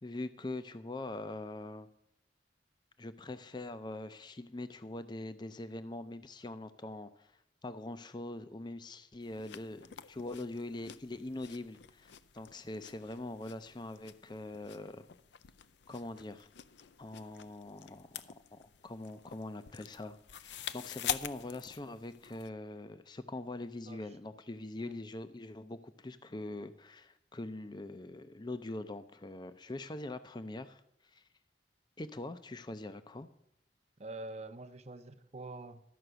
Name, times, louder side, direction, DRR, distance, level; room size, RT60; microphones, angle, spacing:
voice 1, 0.0-1.9 3.0-7.3 7.6-15.1 15.9-16.5 17.0-31.2 32.0-33.3, left 2 dB, 25° left, 0.5 m, -43 dB
sound 1, 9.2-22.5, left 9 dB, 75° left, 0.5 m, -46 dB
voice 2, 34.0-35.8, right 2 dB, 35° right, 0.7 m, -45 dB
12.5 x 5.9 x 7.8 m
head